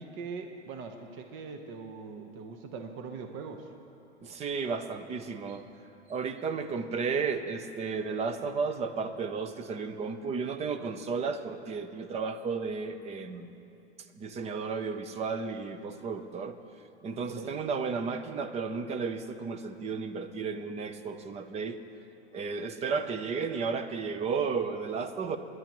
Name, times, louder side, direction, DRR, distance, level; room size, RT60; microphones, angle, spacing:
voice 1, 0.0-3.7 17.4-17.6, right 4 dB, 35° right, 5 dB, 1.0 m, -41 dB
voice 2, 4.2-5.6 6.1-13.6 14.1-16.6 17.0-21.8 22.3-25.4, right 5 dB, 20° right, 9 dB, 0.6 m, -33 dB
28.0 x 11.0 x 3.0 m, 2.9 s
hypercardioid pair, 120°, 34 cm